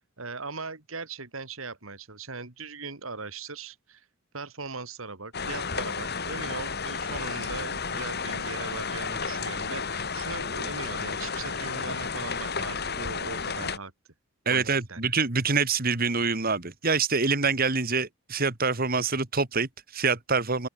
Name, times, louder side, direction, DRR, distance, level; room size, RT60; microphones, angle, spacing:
voice 1, 0.0-4.1 4.3-13.9 14.5-15.0, right 4 dB, 75° right, 2.8 m, -39 dB
sound 1, 5.3-13.8, left 5 dB, 50° left, 3.8 m, -32 dB
voice 2, 14.5-20.7, right 4 dB, 45° right, 2.2 m, -26 dB
open air
head